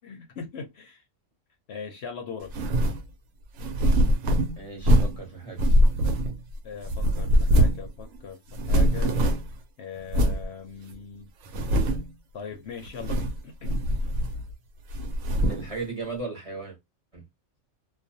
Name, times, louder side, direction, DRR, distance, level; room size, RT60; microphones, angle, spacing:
voice 1, 0.0-1.0 1.7-2.5 6.6-9.2 9.8-11.3 12.3-13.9, left 6 dB, 65° left, 0.7 m, -40 dB
sound 1, 2.5-3.0 3.6-5.2 5.6-6.5 6.9-7.9 8.1-8.2 8.5-9.6 10.1-10.4 10.9-11.0 11.5-12.1 12.9-13.4 13.6-14.5 14.9-15.7, equal, 90° right, 1.0 m, -22 dB
voice 2, 4.6-5.6 15.4-16.8 17.1-17.2, right 3 dB, 35° right, 0.7 m, -36 dB
2.4 x 2.2 x 2.6 m
omnidirectional pair, 1.4 m